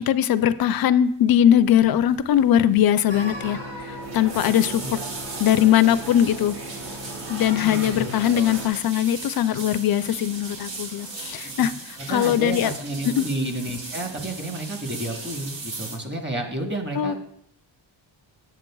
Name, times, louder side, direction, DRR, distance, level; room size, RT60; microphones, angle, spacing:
voice 1, 0.0-5.0 5.4-6.6 7.3-11.7 12.1-12.7 13.2-13.3 17.0-17.1, left 10 dB, 55° left, 13 dB, 0.5 m, -20 dB
sound 1, 1.7-1.9 2.2-2.5 2.8-2.9 3.8-16.0, right 3 dB, 75° right, 1.5 m, -37 dB
sound 2, 3.1-8.7, right 1 dB, 55° right, 1.4 m, -36 dB
voice 2, 7.5-8.5 11.6-11.7 12.1-17.2, right 1 dB, 25° right, 3 dB, 1.3 m, -31 dB
9.0 x 7.4 x 2.3 m, 0.70 s
cardioid pair, 80°, 45 cm